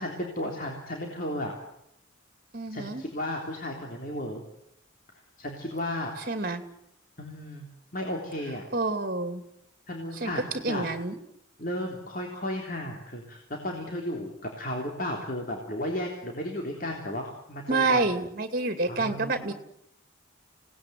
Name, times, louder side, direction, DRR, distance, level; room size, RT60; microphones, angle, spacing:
voice 1, 0.0-1.5 2.7-4.4 5.4-6.1 7.2-7.7 7.9-8.7 9.9-10.9 11.6-18.0 18.9-19.5, left 1 dB, 45° left, 1 dB, 3.5 m, -34 dB
voice 2, 2.5-3.0 6.3-6.6 8.7-9.4 10.2-11.2 17.7-19.5, right 3 dB, 45° right, 8 dB, 2.6 m, -28 dB
28.5 x 18.5 x 9.3 m, 0.80 s
head